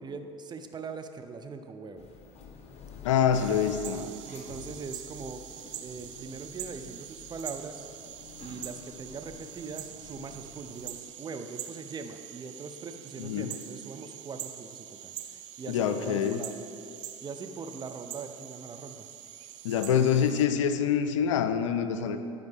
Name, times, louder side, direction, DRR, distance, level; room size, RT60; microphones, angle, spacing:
voice 1, 0.0-2.1 3.9-5.4 5.8-7.9 8.4-16.5 17.2-19.1, right 4 dB, 30° right, 7 dB, 0.6 m, -41 dB
sound 1, 2.0-10.9, left 5 dB, 45° left, 1.0 m, -49 dB
voice 2, 3.0-4.0 13.2-13.5 15.7-16.4 19.6-22.2, left 8 dB, 80° left, 10 dB, 0.4 m, -26 dB
sound 2, 3.3-20.5, right 11 dB, 75° right, 0.4 m, -44 dB
10.5 x 5.2 x 3.6 m, 2.5 s
hypercardioid pair, 70°, 16 cm